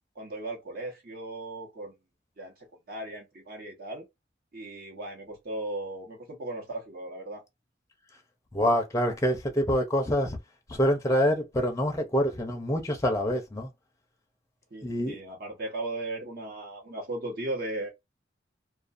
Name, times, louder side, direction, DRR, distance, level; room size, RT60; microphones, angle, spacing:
voice 1, 0.1-1.9 2.4-4.0 4.5-7.4 14.7-17.9, right 2 dB, 55° right, 0.9 m, -37 dB
voice 2, 8.5-10.4 10.7-13.7 14.8-15.2, equal, 15° left, 0.5 m, -26 dB
2.4 x 2.3 x 2.5 m
head